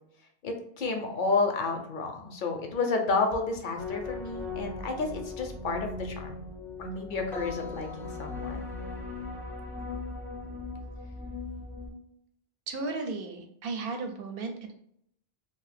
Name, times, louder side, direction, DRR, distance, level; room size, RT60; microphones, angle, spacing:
voice 1, 0.4-6.4 6.8-8.8, left 3 dB, 60° left, 3 dB, 0.6 m, -31 dB
sound 1, 3.8-11.9, left 3 dB, 5° left, 0.5 m, -38 dB
voice 2, 12.7-14.7, right 3 dB, 70° right, 5 dB, 0.7 m, -35 dB
2.6 x 2.1 x 3.2 m, 0.70 s
omnidirectional pair, 1.0 m